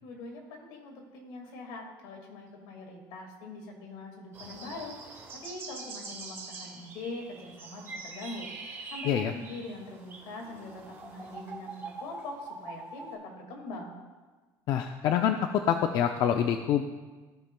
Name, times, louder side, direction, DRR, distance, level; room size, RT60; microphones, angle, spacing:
voice 1, 0.0-13.9, left 2 dB, 80° left, 1 dB, 1.9 m, -43 dB
sound 1, 4.3-13.1, right 3 dB, 30° right, 1.8 m, -44 dB
voice 2, 14.7-16.8, left 9 dB, 50° left, 6 dB, 0.4 m, -26 dB
15.0 x 5.7 x 2.2 m, 1.3 s
cardioid pair, 145°, 9 cm